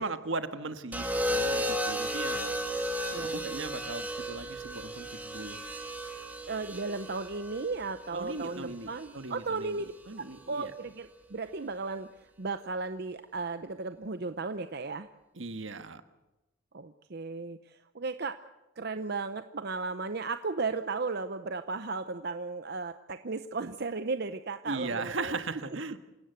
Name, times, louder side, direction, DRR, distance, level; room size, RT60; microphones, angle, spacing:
voice 1, 0.0-2.5 3.2-5.6 8.1-10.7 15.3-16.0 24.6-26.0, right 3 dB, 70° right, 9 dB, 1.5 m, -38 dB
sound 1, 0.9-9.1 10.3-10.7, equal, 10° right, 2.5 m, -34 dB
voice 2, 3.1-3.4 6.5-12.1 12.4-15.1 16.7-18.4 18.8-25.4, right 3 dB, 55° right, 10 dB, 0.7 m, -35 dB
27.5 x 17.0 x 8.1 m, 1.0 s
head